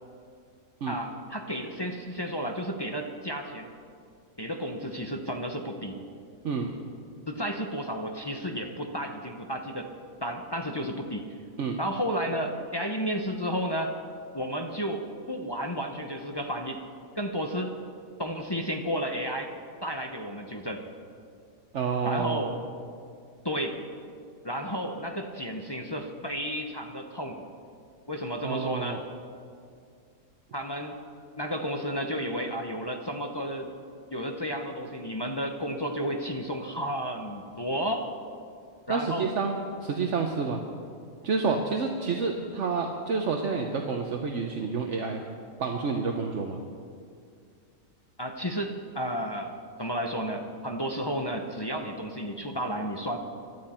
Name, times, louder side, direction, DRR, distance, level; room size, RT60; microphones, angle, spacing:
voice 1, 0.9-3.7 4.4-6.0 7.3-9.9 10.2-11.3 11.8-13.9 14.3-16.8 17.2-17.7 18.2-19.5 19.8-20.8 22.0-22.5 23.4-23.8 24.4-27.4 28.1-29.0 30.5-31.0 31.4-33.7 34.1-38.1 38.9-39.3 48.2-53.2, equal, 20° left, 3 dB, 0.8 m, -32 dB
voice 2, 21.7-22.4 28.4-29.0 38.9-40.6 41.2-45.2 45.6-46.6, right 5 dB, 60° right, 3 dB, 1.2 m, -29 dB
21.0 x 12.5 x 4.4 m, 2.3 s
omnidirectional pair, 1.4 m